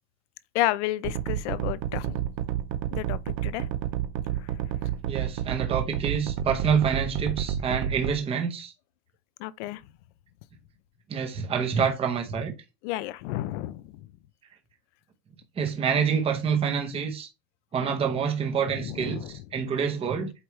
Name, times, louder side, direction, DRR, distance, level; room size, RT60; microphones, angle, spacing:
voice 1, 0.5-2.3 2.9-3.7 4.4-4.5 9.4-9.8 12.8-14.1 18.7-19.4, left 15 dB, 50° left, 0.5 m, -31 dB
sound 1, 1.0-8.1, right 11 dB, 30° right, 0.4 m, -29 dB
voice 2, 5.0-8.7 11.1-12.5 15.6-17.3 17.7-20.3, right 6 dB, 10° right, 0.8 m, -27 dB
8.3 x 4.7 x 3.1 m
supercardioid pair, 175°, 48 cm